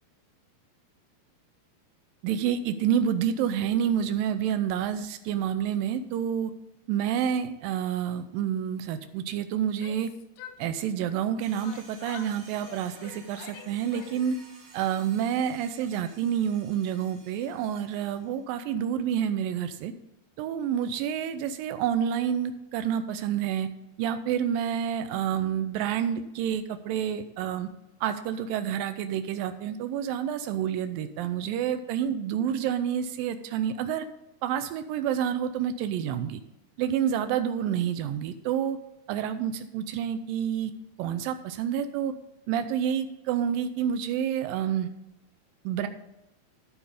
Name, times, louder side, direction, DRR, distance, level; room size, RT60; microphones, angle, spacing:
voice 1, 2.2-6.5 6.9-10.1 10.6-14.4 14.7-19.9 20.4-23.7 24.0-27.7 28.0-34.1 34.4-36.4 36.8-38.8 39.1-40.7 41.0-42.1 42.5-44.9 45.7-45.9, right 9 dB, 85° right, 10 dB, 2.0 m, -28 dB
Yell, 9.6-11.3 11.6-14.4, left 8 dB, 75° left, 2.1 m, -47 dB
sound 1, 11.4-18.4, right 3 dB, 55° right, 2.7 m, -53 dB
13.5 x 5.0 x 4.9 m, 0.90 s
omnidirectional pair, 4.6 m